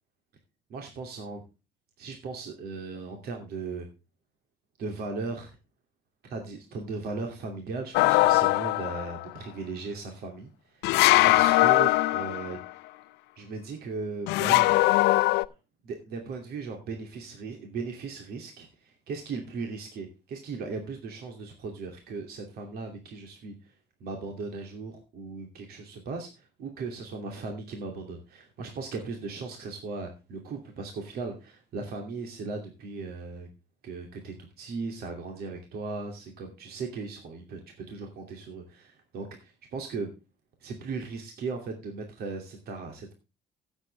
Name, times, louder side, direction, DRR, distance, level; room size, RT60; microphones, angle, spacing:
voice 1, 0.7-1.4 2.0-3.9 4.8-5.5 6.2-11.0 11.3-12.6 13.4-14.7 15.8-23.7 24.0-33.5 33.8-37.6 37.9-40.1 40.6-43.1, right 4 dB, 65° right, 3 dB, 2.7 m, -37 dB
sound 1, 7.9-9.2 10.8-12.7 14.3-15.4, left 20 dB, 90° left, 0.5 m, -21 dB
16.0 x 8.1 x 3.4 m, 0.29 s
cardioid pair, 110°, 17 cm